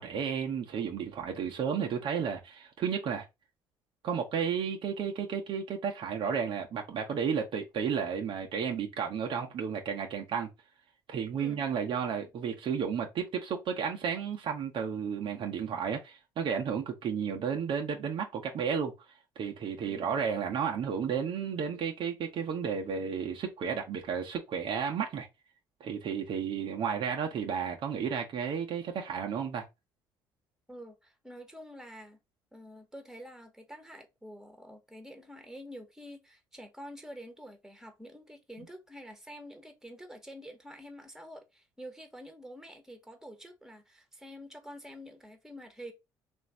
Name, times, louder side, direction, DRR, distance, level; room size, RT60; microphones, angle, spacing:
voice 1, 0.0-3.3 4.0-10.5 11.1-18.9 19.4-25.3 25.8-29.6, right 7 dB, 60° right, 1.0 m, -32 dB
voice 2, 19.8-20.3 30.7-32.2 32.5-45.9, equal, 5° right, 1.3 m, -48 dB
3.1 x 2.7 x 4.5 m
hypercardioid pair, 60°, 10 cm